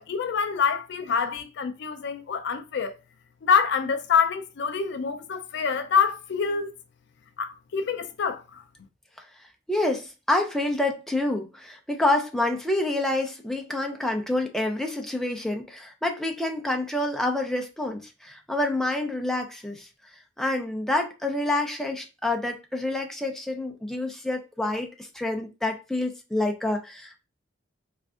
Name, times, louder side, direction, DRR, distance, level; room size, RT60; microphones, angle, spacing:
voice 1, 0.0-2.9 3.4-6.7 7.4-8.6, left 6 dB, 60° left, 0.4 m, -26 dB
voice 2, 9.7-19.9 20.4-27.2, left 2 dB, ahead, 0.5 m, -27 dB
3.3 x 2.5 x 3.5 m
head